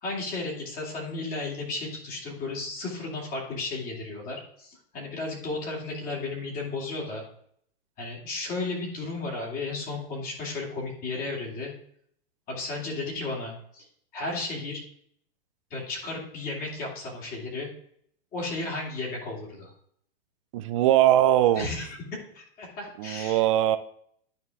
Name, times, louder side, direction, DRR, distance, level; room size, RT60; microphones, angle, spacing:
voice 1, 0.0-7.2 8.0-11.7 12.5-13.9 14.1-14.8 15.7-17.7 18.3-19.7 21.5-22.0 22.3-23.5, left 3 dB, 25° left, -2 dB, 2.7 m, -34 dB
voice 2, 20.5-21.7 23.0-23.8, right 13 dB, 35° right, 11 dB, 0.4 m, -21 dB
11.0 x 4.5 x 3.5 m, 0.65 s
hypercardioid pair, 155°, 31 cm